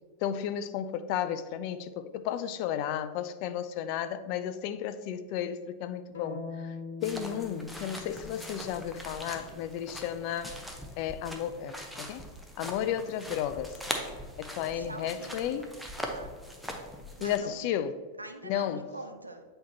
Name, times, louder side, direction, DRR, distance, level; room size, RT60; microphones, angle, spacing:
voice 1, 0.2-6.8 7.0-10.5 11.0-12.3 12.6-13.8 14.4-15.7 17.2-17.9 18.4-18.8, left 10 dB, 45° left, 0.4 m, -33 dB
sound 1, 6.1-10.2, left 4 dB, 60° left, 0.9 m, -44 dB
sound 2, 7.0-17.4, equal, ahead, 0.8 m, -41 dB
voice 2, 14.7-15.7 16.0-16.3 17.2-17.8 18.2-19.4, right 2 dB, 80° right, 0.6 m, -44 dB
8.2 x 4.4 x 2.7 m
figure-of-eight pair, 90°, 0 cm